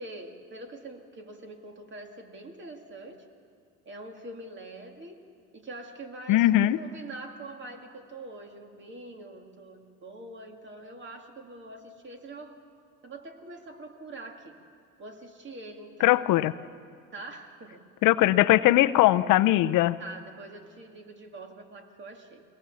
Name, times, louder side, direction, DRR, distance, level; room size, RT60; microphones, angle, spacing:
voice 1, 0.0-3.3 3.9-5.2 5.5-12.6 13.0-14.5 15.0-16.1 16.6-17.8 20.0-22.4, right 2 dB, 35° right, 4 dB, 2.2 m, -44 dB
voice 2, 6.3-6.8 16.0-16.5 18.0-20.0, left 15 dB, 75° left, 13 dB, 0.6 m, -20 dB
22.5 x 18.0 x 7.1 m, 2.2 s
cardioid pair, 110°, 31 cm